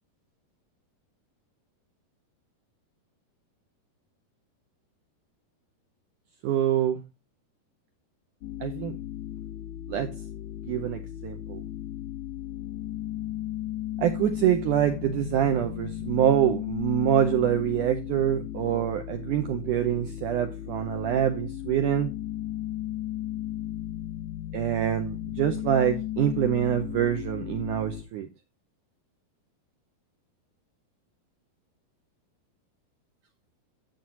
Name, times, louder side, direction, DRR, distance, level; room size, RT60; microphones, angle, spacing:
voice 1, 6.4-7.0 8.6-9.0 9.9-10.1 10.7-11.6 14.0-22.1 24.5-28.3, right 10 dB, 80° right, 1.9 m, -25 dB
sound 1, 8.4-28.0, left 13 dB, 75° left, 1.5 m, -35 dB
10.5 x 7.8 x 2.8 m
omnidirectional pair, 4.6 m